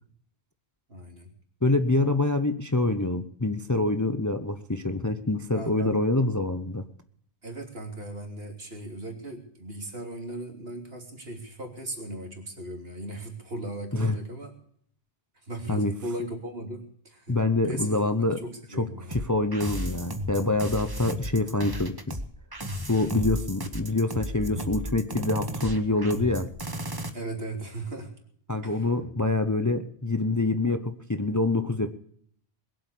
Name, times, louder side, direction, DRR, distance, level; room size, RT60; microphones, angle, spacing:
voice 1, 0.9-1.3 5.5-6.0 7.4-14.5 15.4-17.4 17.6-18.0 18.4-19.2 27.1-28.1 28.6-28.9, right 1 dB, 65° right, 3 dB, 3.3 m, -37 dB
voice 2, 1.6-6.8 13.9-14.2 15.7-15.9 17.3-18.4 18.7-22.2 22.9-26.5 28.5-31.9, left 2 dB, 20° left, 9 dB, 0.7 m, -26 dB
sound 1, 19.1-27.1, equal, 20° right, 1.2 m, -34 dB
21.5 x 7.9 x 8.3 m, 0.63 s
omnidirectional pair, 1.1 m